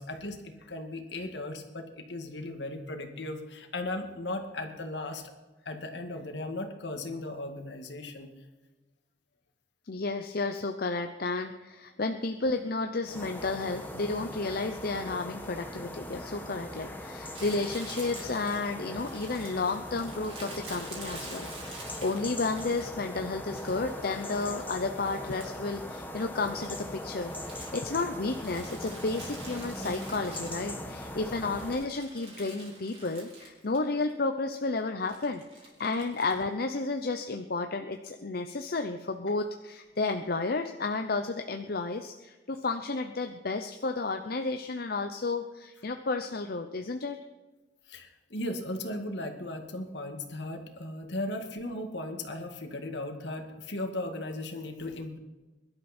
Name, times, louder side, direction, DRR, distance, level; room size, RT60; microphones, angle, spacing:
voice 1, 0.0-5.3 5.6-8.3 47.9-55.2, left 1 dB, 75° left, 5 dB, 2.2 m, -37 dB
voice 2, 9.9-47.2, left 3 dB, 55° left, 6 dB, 0.8 m, -32 dB
sound 1, 13.0-31.9, left 1 dB, 10° left, 1.4 m, -40 dB
Crumpling crinkling, 17.3-23.1 23.5-25.7 26.0-31.0 31.4-33.8 34.1-34.2 35.0-36.4, right 2 dB, 35° right, 5.1 m, -47 dB
22.5 x 12.0 x 4.4 m, 1.2 s
head